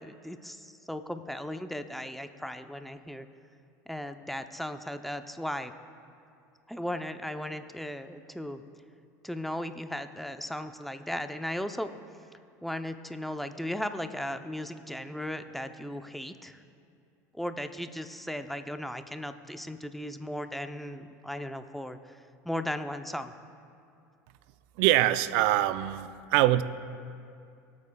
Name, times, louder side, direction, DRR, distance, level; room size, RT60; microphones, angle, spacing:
voice 1, 0.0-3.3 3.9-5.7 6.7-8.6 9.2-11.9 12.6-16.6 17.3-22.2 22.4-23.3, left 1 dB, ahead, 8 dB, 0.6 m, -36 dB
voice 2, 24.8-26.6, right 15 dB, 65° right, 14 dB, 0.5 m, -24 dB
22.0 x 8.5 x 2.3 m, 2.4 s
hypercardioid pair, 90°, 9 cm